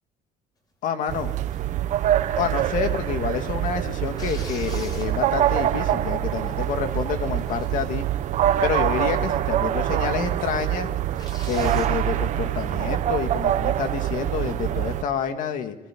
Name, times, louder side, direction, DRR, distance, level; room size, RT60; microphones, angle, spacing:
voice 1, 0.8-1.3 2.4-8.1 8.6-10.9 11.4-15.8, left 7 dB, 60° left, 7 dB, 2.2 m, -28 dB
sound 1, 1.1-15.0, right 12 dB, 55° right, 1.2 m, -25 dB
sound 2, 1.5-1.7 2.3-3.2 4.1-5.5 6.1-6.2 6.5-6.9 7.2-8.1 8.7-9.0 9.2-9.3 9.9-10.0 10.3-10.4 11.1-12.0 14.3-14.6, left 2 dB, 25° left, 5.3 m, -44 dB
23.0 x 16.0 x 7.7 m, 0.94 s
cardioid pair, 145°, 15 cm